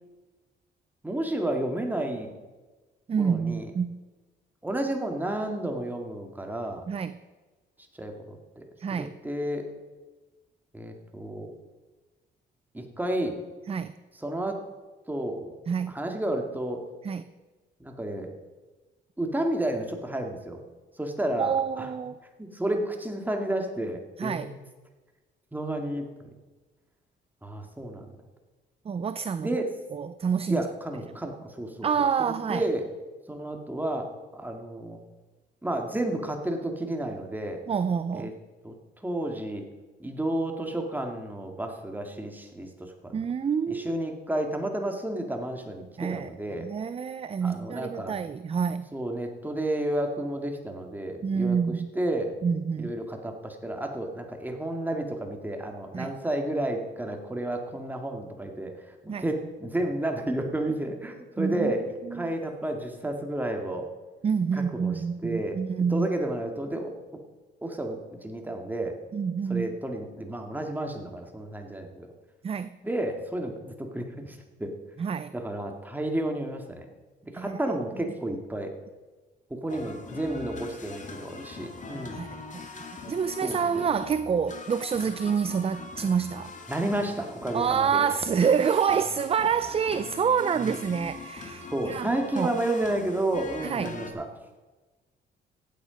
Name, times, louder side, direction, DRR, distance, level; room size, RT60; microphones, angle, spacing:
voice 1, 1.0-2.3 3.2-3.7 4.6-6.9 8.0-8.6 8.9-9.7 10.7-11.5 12.7-13.4 14.1-14.6 15.1-15.5 15.9-16.8 17.8-18.3 19.2-20.6 21.0-21.9 22.4-24.5 25.5-26.1 27.4-28.1 29.4-29.7 30.5-31.9 32.2-32.8 33.3-35.0 35.6-37.6 38.1-38.3 38.6-39.6 40.0-43.3 43.7-46.7 47.4-48.1 48.9-52.3 52.8-63.9 64.5-65.6 65.9-66.9 67.6-69.0 69.5-72.1 72.8-74.7 75.3-76.9 77.2-78.7 79.6-82.2 83.4-83.8 86.7-88.0 90.6-90.8 91.7-94.3, right 1 dB, 10° right, 2.2 m, -31 dB
voice 2, 3.1-4.0 6.9-7.2 8.8-9.1 13.7-13.9 15.7-15.9 17.0-17.2 21.4-22.1 24.2-24.5 28.9-29.6 29.9-30.7 31.8-32.7 37.7-38.3 43.1-44.0 46.0-46.3 46.6-48.9 51.2-51.9 52.4-52.9 55.9-56.1 59.1-59.2 61.4-61.7 62.1-62.3 64.2-66.1 69.1-69.7 72.4-72.7 75.0-75.3 77.4-77.6 82.1-82.3 83.1-86.5 87.5-92.5 93.6-94.0, right 6 dB, 30° right, 0.5 m, -27 dB
sound 1, 79.7-94.1, left 4 dB, 40° left, 2.3 m, -42 dB
15.5 x 8.9 x 5.2 m
cardioid pair, 90°, 20 cm